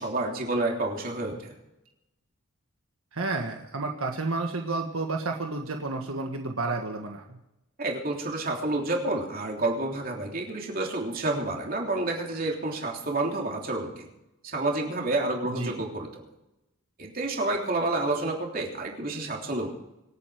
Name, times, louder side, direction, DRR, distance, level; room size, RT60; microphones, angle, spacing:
voice 1, 0.0-1.5 7.8-14.1 14.4-16.2 17.0-19.7, right 2 dB, 40° right, 0 dB, 3.3 m, -29 dB
voice 2, 3.1-7.4 15.4-15.7, right 3 dB, 80° right, 3 dB, 1.5 m, -31 dB
26.0 x 9.1 x 5.1 m, 0.92 s
head